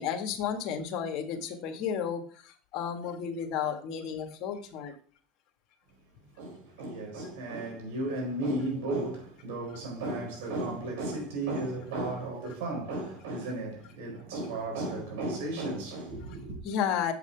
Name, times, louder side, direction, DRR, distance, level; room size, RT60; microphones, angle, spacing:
voice 1, 0.0-4.9 16.6-17.1, left 8 dB, 60° left, 1.6 m, -32 dB
voice 2, 6.4-16.6, right 2 dB, 80° right, 4.2 m, -34 dB
8.0 x 7.0 x 3.3 m
supercardioid pair, 100°, 0 cm